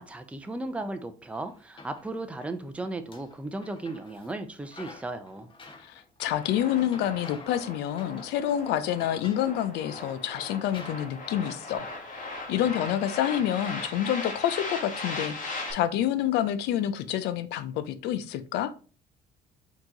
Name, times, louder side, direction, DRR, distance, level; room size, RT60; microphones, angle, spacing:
voice 1, 0.0-5.5, right 2 dB, 5° right, 0.5 m, -36 dB
sound 1, 1.3-2.5 2.9-4.3 4.6-7.6 7.9-8.4 8.7-9.8 10.3-10.4 10.7-11.8, left 3 dB, 30° left, 1.0 m, -50 dB
voice 2, 5.8-18.7, left 11 dB, 85° left, 0.5 m, -28 dB
sound 2, 6.3-15.7, left 2 dB, 50° left, 1.4 m, -38 dB
4.4 x 3.0 x 3.8 m
cardioid pair, 110°, 17 cm